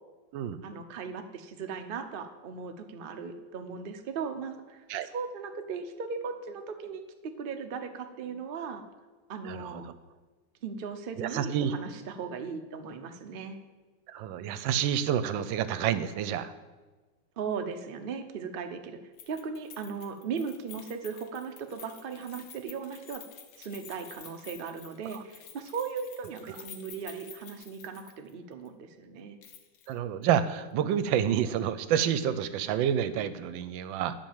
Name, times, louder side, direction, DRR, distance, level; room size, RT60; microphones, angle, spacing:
voice 1, 0.6-4.9 5.1-8.8 9.3-9.9 10.6-13.6 17.4-19.0 19.3-23.2 23.6-29.4, right 5 dB, 65° right, 6 dB, 0.5 m, -37 dB
voice 2, 9.4-9.9 11.2-11.7 14.1-16.5 25.1-25.2 29.9-34.1, right 9 dB, 80° right, 13 dB, 1.3 m, -29 dB
Keys jangling, 19.2-28.3 28.6-28.7 29.4-29.9 30.2-30.3, left 8 dB, 85° left, 1.7 m, -50 dB
10.5 x 4.9 x 7.3 m, 1.3 s
omnidirectional pair, 2.1 m